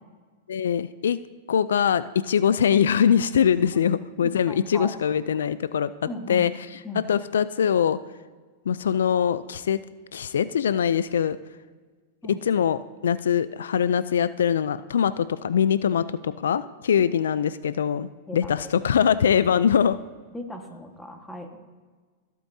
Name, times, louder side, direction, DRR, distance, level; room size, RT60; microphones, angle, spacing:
voice 1, 0.5-1.2 1.5-5.9 6.3-6.5 7.1-8.0 8.7-9.8 10.1-11.4 12.3-20.0, left 8 dB, 90° left, 15 dB, 0.4 m, -22 dB
voice 2, 4.2-4.9 6.0-6.5 6.8-7.1 12.2-12.4 17.0-17.1 18.3-18.7 20.3-21.6, left 1 dB, 5° left, 3 dB, 1.5 m, -37 dB
20.5 x 8.2 x 2.7 m, 1.5 s
hypercardioid pair, 125°, 0 cm